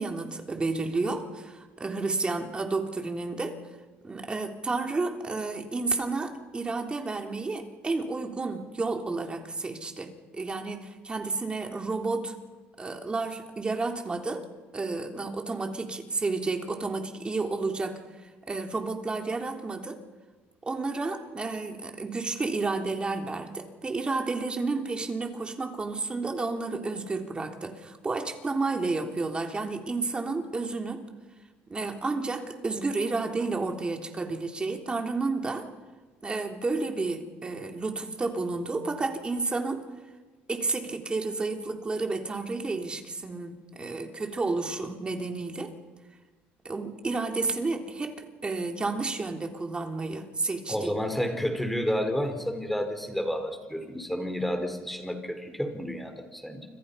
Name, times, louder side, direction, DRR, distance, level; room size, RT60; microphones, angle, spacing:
voice 1, 0.0-3.6 4.0-12.3 12.8-14.4 14.7-18.0 18.5-20.0 20.6-31.1 31.7-35.7 36.2-39.9 40.5-45.7 46.7-50.9, right 3 dB, 20° right, 4 dB, 3.4 m, -31 dB
voice 2, 50.7-56.7, equal, 5° left, 6 dB, 4.9 m, -30 dB
29.5 x 25.5 x 5.7 m, 1.3 s
cardioid pair, 100°, 4 cm